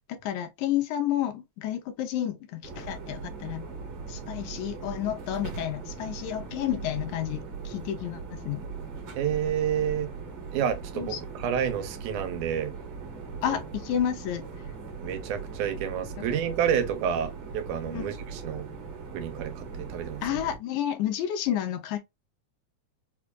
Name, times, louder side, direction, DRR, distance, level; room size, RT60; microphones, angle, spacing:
voice 1, 0.1-3.6 4.1-8.6 10.9-11.2 13.4-14.4 16.2-16.3 17.9-18.1 20.2-22.0, left 11 dB, 80° left, 2.0 m, -30 dB
sound 1, 2.6-20.6, right 5 dB, 55° right, 1.9 m, -39 dB
voice 2, 9.2-10.1 10.5-12.7 13.5-13.6 15.0-18.7 19.1-20.2, right 9 dB, 85° right, 2.1 m, -29 dB
5.0 x 2.3 x 2.2 m
omnidirectional pair, 3.5 m